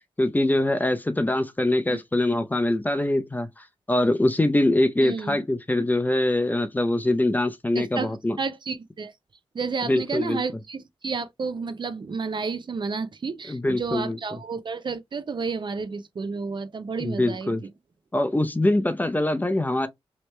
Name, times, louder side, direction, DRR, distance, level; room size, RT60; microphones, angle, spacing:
voice 1, 0.2-8.4 9.8-10.4 13.5-14.2 17.0-17.6 18.1-19.9, left 1 dB, 15° left, 0.5 m, -23 dB
voice 2, 5.0-5.4 7.7-9.1 9.5-17.5, right 4 dB, 45° right, 0.5 m, -31 dB
3.1 x 3.0 x 3.2 m
wide cardioid pair, 85°, 11 cm